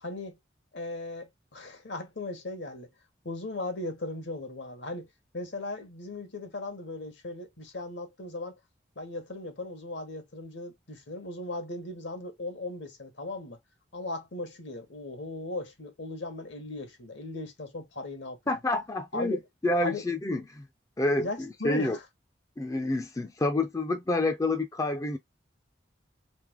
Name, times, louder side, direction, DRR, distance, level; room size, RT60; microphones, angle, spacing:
voice 1, 0.0-0.4 0.7-2.9 3.2-5.1 5.3-8.5 9.0-13.6 13.9-18.4 19.1-19.4 19.8-20.1 21.2-22.0, left 2 dB, 70° left, 1.2 m, -37 dB
voice 2, 18.5-20.7 21.0-22.0 22.6-25.2, left 2 dB, 15° left, 0.4 m, -28 dB
3.3 x 3.2 x 3.6 m
head